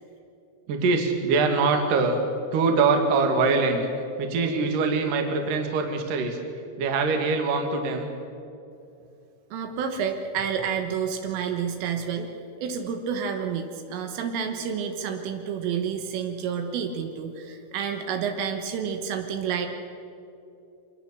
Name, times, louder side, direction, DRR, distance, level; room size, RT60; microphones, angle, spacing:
voice 1, 0.7-2.2 2.5-3.9 4.2-6.4 6.8-8.1, right 4 dB, 55° right, 4 dB, 3.0 m, -23 dB
voice 2, 9.5-12.3 12.6-19.7, right 7 dB, 75° right, 5 dB, 3.8 m, -29 dB
25.0 x 20.0 x 6.9 m, 2.6 s
omnidirectional pair, 5.9 m